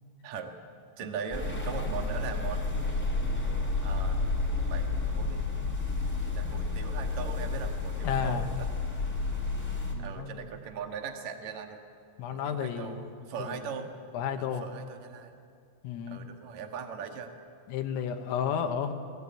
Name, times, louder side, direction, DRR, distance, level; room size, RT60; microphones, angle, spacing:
voice 1, 1.0-2.9 3.8-4.3 4.7-5.5 5.9-8.7 10.0-11.8 12.3-13.9 14.4-15.3 16.1-17.3, right 6 dB, 60° right, 4 dB, 1.9 m, -40 dB
sound 1, 1.3-9.9, left 3 dB, 5° left, 2.9 m, -31 dB
voice 2, 8.0-8.5 9.9-10.4 12.2-13.1 13.4-13.6 14.1-14.7 15.8-16.2 17.7-18.9, left 8 dB, 80° left, 5 dB, 3.9 m, -32 dB
27.5 x 20.0 x 8.6 m, 2.3 s
omnidirectional pair, 6.0 m